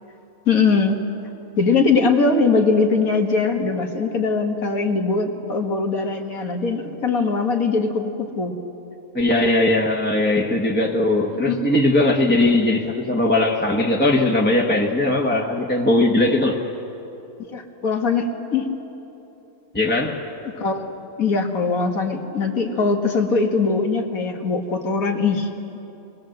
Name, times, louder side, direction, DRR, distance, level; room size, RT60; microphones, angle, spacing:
voice 1, 0.5-1.0 1.6-8.6 11.3-11.6 17.4-18.7 20.6-20.9 21.2-25.5, left 4 dB, 80° left, 3 dB, 2.1 m, -21 dB
voice 2, 9.1-16.6 19.7-20.2, left 2 dB, 10° left, -1 dB, 1.1 m, -19 dB
24.0 x 20.0 x 7.8 m, 3.0 s
omnidirectional pair, 1.5 m